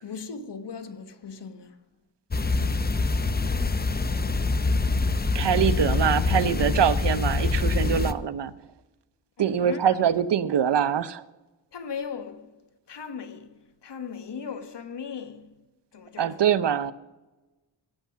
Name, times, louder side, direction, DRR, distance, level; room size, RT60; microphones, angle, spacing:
voice 1, 0.0-1.8 9.4-10.1 11.7-15.6 15.9-16.4, left 6 dB, 65° left, 1.2 m, -38 dB
sound 1, 2.3-8.1, left 3 dB, 20° left, 0.6 m, -25 dB
voice 2, 5.3-8.5 9.4-11.2 16.2-16.9, right 8 dB, 65° right, 0.7 m, -24 dB
17.0 x 7.3 x 5.8 m
cardioid pair, 65°, 45 cm